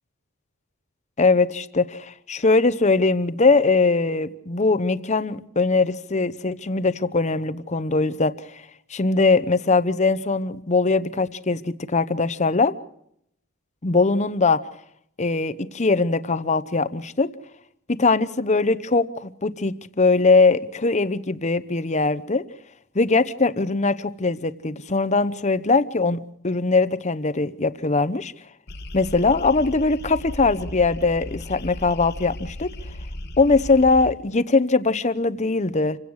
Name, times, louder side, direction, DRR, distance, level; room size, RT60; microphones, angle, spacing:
voice 1, 1.2-8.3 8.9-12.7 13.8-14.6 15.2-17.3 17.9-22.4 22.9-28.3 28.9-32.7 33.4-36.0, left 3 dB, 35° left, 0.9 m, -21 dB
sound 1, 28.7-34.1, left 1 dB, 50° left, 1.3 m, -36 dB
27.5 x 17.0 x 6.4 m
head